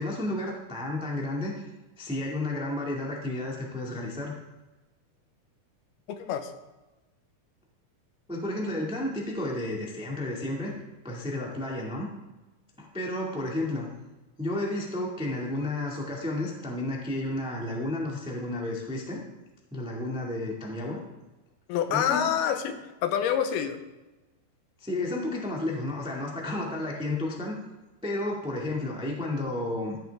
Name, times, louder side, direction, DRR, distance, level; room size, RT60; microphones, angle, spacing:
voice 1, 0.0-1.7 2.0-4.3 8.3-10.7 11.0-12.1 12.8-13.9 14.4-19.2 19.7-21.0 21.9-22.3 24.8-27.5 28.0-30.0, left 2 dB, 5° right, -2 dB, 0.6 m, -32 dB
voice 2, 6.1-6.5 21.7-23.8, left 9 dB, 85° left, 8 dB, 2.8 m, -27 dB
14.0 x 10.5 x 3.5 m, 1.1 s
omnidirectional pair, 4.4 m